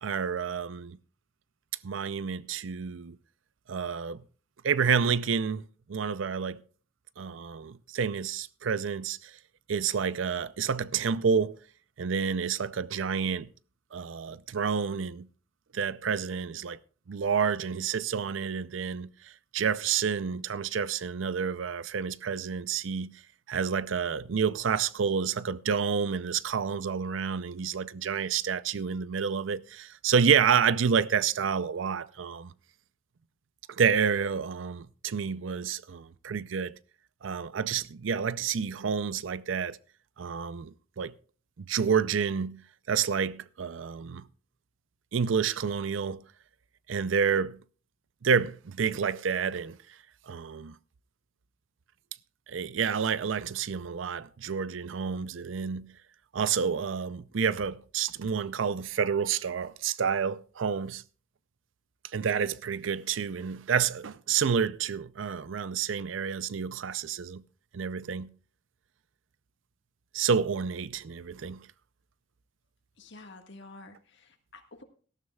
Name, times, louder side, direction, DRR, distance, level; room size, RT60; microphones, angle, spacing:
voice 1, 0.0-1.0 1.8-3.2 3.7-4.2 4.6-5.6 5.9-6.6 7.2-9.4 9.7-11.6 12.0-13.5 13.9-15.3 15.7-16.8 17.1-23.1 23.5-32.5 33.7-36.7 37.2-39.8 40.2-41.1 41.6-42.6 42.9-44.3 45.1-46.2 46.9-47.6 48.2-49.8 50.3-50.7 52.5-55.9 56.3-61.0 62.1-67.4 67.7-68.3 70.1-71.7, right 6 dB, 75° right, 0.5 m, -29 dB
voice 2, 73.0-74.8, left 2 dB, 65° left, 1.7 m, -49 dB
18.0 x 13.0 x 2.3 m
head